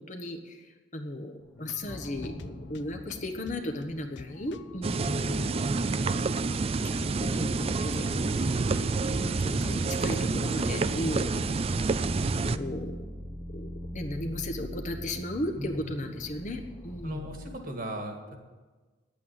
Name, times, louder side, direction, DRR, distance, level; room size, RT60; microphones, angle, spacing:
voice 1, 0.0-5.1 6.8-8.5 8.9-11.4 12.4-13.0 13.5-17.2, left 1 dB, 40° left, 4 dB, 1.1 m, -36 dB
sound 1, 1.4-17.6, equal, 10° left, 0.8 m, -42 dB
sound 2, 1.6-11.2, left 4 dB, 65° left, 0.5 m, -48 dB
sound 3, 4.8-12.6, right 3 dB, 30° right, 0.4 m, -28 dB
voice 2, 5.0-6.2 15.6-16.0 17.0-18.4, equal, 45° right, 3 dB, 1.9 m, -38 dB
10.5 x 8.5 x 9.4 m, 1.3 s
head